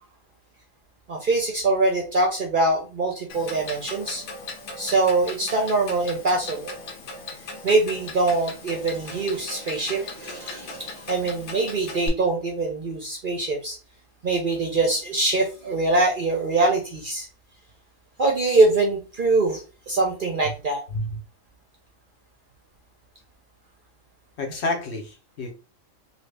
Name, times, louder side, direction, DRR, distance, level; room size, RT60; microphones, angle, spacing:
voice 1, 1.1-4.2 4.8-6.8 7.6-13.8 14.2-17.3 18.2-20.8, right 2 dB, 50° right, 1 dB, 0.6 m, -23 dB
Clock, 3.3-12.1, left 3 dB, 80° left, 1.2 m, -38 dB
voice 2, 24.4-25.5, left 2 dB, 60° left, 2 dB, 0.9 m, -29 dB
2.8 x 2.7 x 3.3 m, 0.33 s
omnidirectional pair, 1.4 m